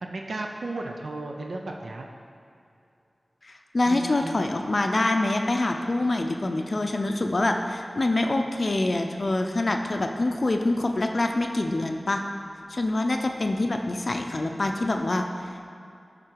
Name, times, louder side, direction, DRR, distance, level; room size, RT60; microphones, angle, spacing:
voice 1, 0.0-2.1 3.9-4.3, right 2 dB, 90° right, 1 dB, 0.5 m, -34 dB
voice 2, 3.4-12.2 12.7-15.3, left 2 dB, 50° left, 4 dB, 0.5 m, -25 dB
11.0 x 3.7 x 4.6 m, 2.6 s
wide cardioid pair, 75°, 0 cm